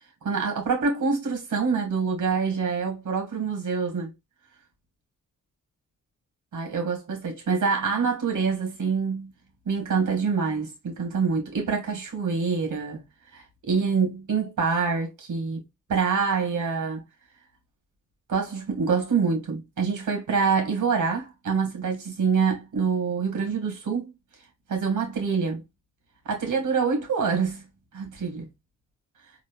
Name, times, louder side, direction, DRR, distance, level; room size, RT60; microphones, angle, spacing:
voice 1, 0.2-4.1 6.5-9.3 9.7-13.0 13.3-15.6 15.9-17.0 18.3-24.1 24.7-25.6 26.3-27.7 27.9-28.5, right 5 dB, 65° right, 1.9 m, -26 dB
4.0 x 2.9 x 2.3 m
supercardioid pair, 55°, 32 cm